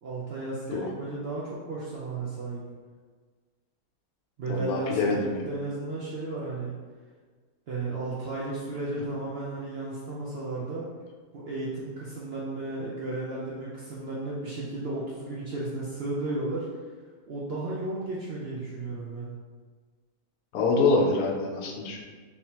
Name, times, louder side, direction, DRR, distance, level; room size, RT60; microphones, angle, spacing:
voice 1, 0.0-2.6 4.4-6.7 7.7-10.9 11.3-16.7 17.3-19.3, right 2 dB, 65° right, -6 dB, 0.6 m, -34 dB
voice 2, 4.5-5.3 20.5-22.0, left 3 dB, 80° left, 0 dB, 1.1 m, -25 dB
3.5 x 2.7 x 2.9 m, 1.5 s
omnidirectional pair, 1.6 m